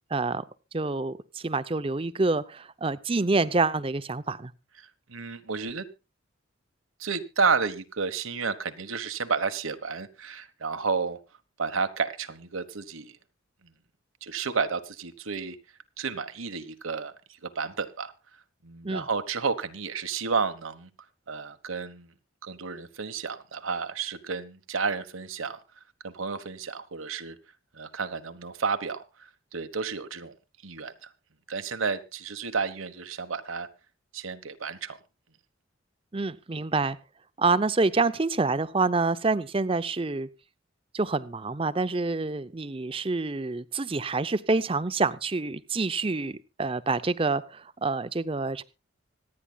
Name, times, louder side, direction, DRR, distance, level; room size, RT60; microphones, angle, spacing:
voice 1, 0.1-0.4 0.7-4.5 18.8-19.0 36.1-37.0 37.4-40.3 40.9-48.6, right 3 dB, 25° right, 0.6 m, -27 dB
voice 2, 4.8-5.9 7.0-11.2 11.6-13.2 13.6-13.7 14.2-15.6 16.0-17.1 17.4-18.1 18.6-20.9 21.3-22.1 22.4-25.6 26.0-27.4 27.7-30.3 30.6-31.1 31.5-33.7 34.1-35.0, right 5 dB, 90° right, 1.2 m, -31 dB
25.5 x 9.8 x 2.3 m
head